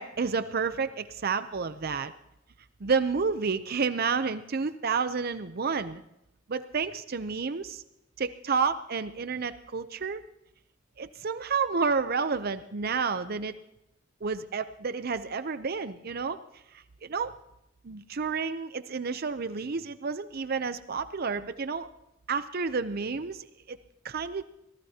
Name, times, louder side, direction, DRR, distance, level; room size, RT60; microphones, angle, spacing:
voice 1, 0.0-2.1 2.8-6.0 6.5-7.8 8.2-10.2 11.0-13.5 14.2-16.4 16.7-17.3 17.8-21.9 22.3-23.8 24.0-24.4, right 5 dB, 50° right, 12 dB, 0.6 m, -30 dB
24.5 x 18.0 x 2.8 m, 0.85 s
head